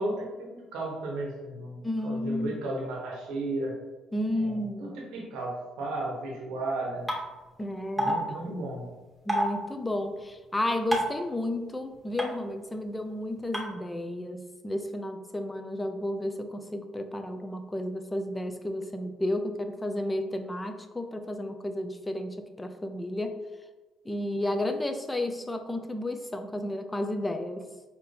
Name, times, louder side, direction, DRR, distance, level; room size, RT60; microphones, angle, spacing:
voice 1, 0.0-3.7 4.3-7.1 8.0-8.8, right 2 dB, 85° right, -1 dB, 0.9 m, -34 dB
voice 2, 1.8-2.5 4.1-5.0 7.6-8.5 9.3-23.4 24.0-27.7, left 1 dB, 15° left, 7 dB, 0.5 m, -32 dB
sound 1, 7.1-7.2 8.0-8.1 9.3-9.5 10.9-11.2 12.2-12.3 13.5-13.6, equal, ahead, 1.2 m, -25 dB
4.2 x 2.8 x 3.3 m, 1.2 s
supercardioid pair, 75°, 0 cm